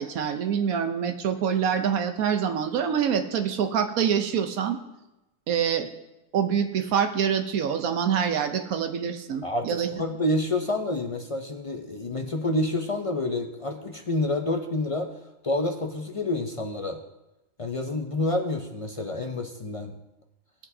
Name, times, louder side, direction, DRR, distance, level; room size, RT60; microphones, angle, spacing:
voice 1, 0.0-4.8 5.5-5.9 6.3-9.9, right 8 dB, 75° right, 8 dB, 1.2 m, -25 dB
voice 2, 9.4-15.1 15.4-17.0 17.6-19.9, left 2 dB, 50° left, 4 dB, 0.4 m, -28 dB
16.5 x 8.1 x 2.7 m, 0.97 s
omnidirectional pair, 1.5 m